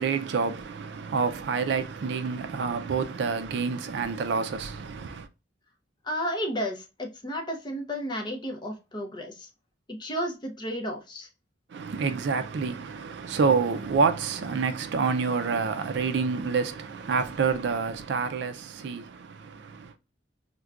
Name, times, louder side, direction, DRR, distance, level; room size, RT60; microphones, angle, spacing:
voice 1, 0.0-5.3 11.7-19.9, right 5 dB, 65° right, 0.4 m, -28 dB
voice 2, 6.0-9.5 9.9-11.3, equal, 25° left, 0.6 m, -32 dB
4.6 x 2.2 x 2.3 m
head